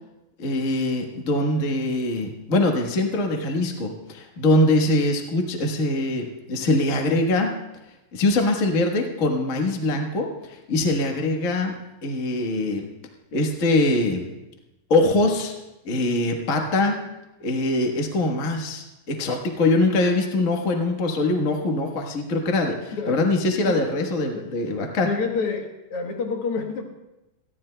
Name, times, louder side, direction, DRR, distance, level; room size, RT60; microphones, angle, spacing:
voice 1, 0.4-7.6 8.1-11.7 12.0-12.8 13.3-14.2 14.9-15.5 15.8-17.0 17.4-25.1, left 2 dB, 80° left, 2 dB, 0.7 m, -23 dB
voice 2, 25.1-26.8, left 5 dB, 60° left, 2 dB, 1.7 m, -28 dB
28.5 x 12.0 x 2.2 m, 0.99 s
omnidirectional pair, 3.7 m